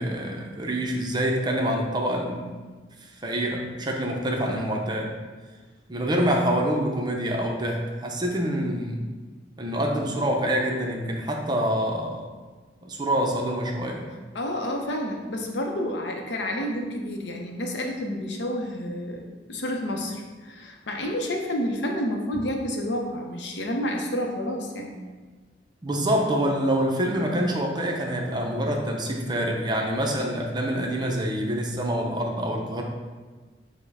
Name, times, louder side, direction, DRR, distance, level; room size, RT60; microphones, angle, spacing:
voice 1, 0.0-2.5 3.2-5.1 5.9-9.1 9.6-12.3 12.8-14.0 25.8-32.8, right 1 dB, 25° right, 0 dB, 0.5 m, -26 dB
voice 2, 14.3-25.0, equal, 70° left, 2 dB, 0.6 m, -30 dB
5.3 x 2.1 x 4.7 m, 1.4 s
head